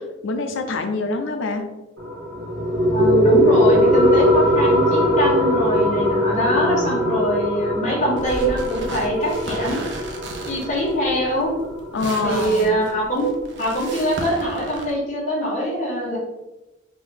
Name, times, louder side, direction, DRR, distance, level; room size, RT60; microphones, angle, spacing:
voice 1, 0.2-1.6 6.5-7.2 11.9-12.8, left 3 dB, 80° left, 5 dB, 0.5 m, -26 dB
sound 1, 2.0-13.0, left 1 dB, 80° right, 1.2 m, -21 dB
voice 2, 2.9-10.0 10.5-11.5 12.2-13.3 13.6-16.2, right 1 dB, 40° left, -5 dB, 1.2 m, -23 dB
sound 2, 8.2-14.9, right 2 dB, 60° right, 0.6 m, -34 dB
3.8 x 2.6 x 3.3 m, 1.1 s
head